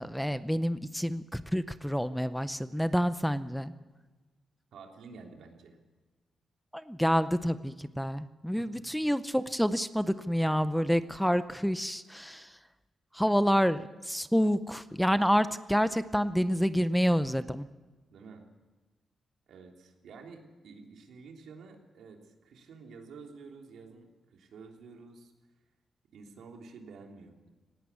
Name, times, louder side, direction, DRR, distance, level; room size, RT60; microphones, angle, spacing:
voice 1, 0.0-3.7 6.7-12.5 13.1-17.7, equal, ahead, 13 dB, 0.6 m, -28 dB
voice 2, 4.7-5.8 8.6-8.8 18.1-18.4 19.5-25.3 26.1-27.5, right 4 dB, 90° right, 2 dB, 3.3 m, -50 dB
18.5 x 18.0 x 8.4 m, 1.2 s
wide cardioid pair, 145°, 0 cm